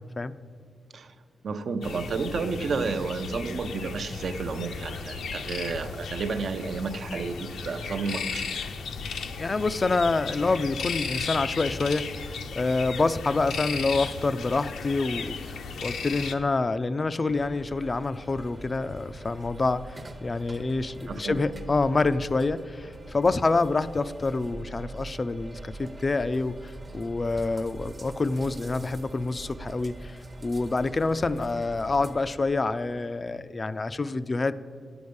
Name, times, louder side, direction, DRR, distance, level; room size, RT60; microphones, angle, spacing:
voice 1, 1.4-8.6 21.1-21.4, right 4 dB, 60° right, 8 dB, 0.7 m, -31 dB
sound 1, 1.8-16.3, left 5 dB, 90° left, 0.7 m, -35 dB
voice 2, 9.4-12.1 12.5-34.6, left 3 dB, 30° left, 14 dB, 0.3 m, -27 dB
sound 2, 17.3-32.4, right 2 dB, 25° right, 0.7 m, -43 dB
10.0 x 8.0 x 5.2 m, 2.2 s
wide cardioid pair, 115°, 0 cm